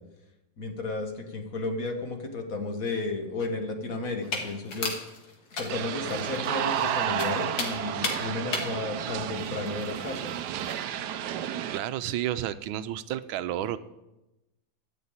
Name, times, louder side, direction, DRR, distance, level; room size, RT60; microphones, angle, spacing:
voice 1, 0.6-4.9 5.6-10.3, left 3 dB, 50° left, 4 dB, 1.6 m, -33 dB
sound 1, 4.2-10.8, left 3 dB, 65° left, 2.5 m, -37 dB
sound 2, 5.7-11.8, right 10 dB, 70° right, 1.1 m, -31 dB
voice 2, 11.7-13.8, right 12 dB, 90° right, 13 dB, 1.5 m, -31 dB
13.5 x 6.3 x 8.6 m, 0.97 s
omnidirectional pair, 2.2 m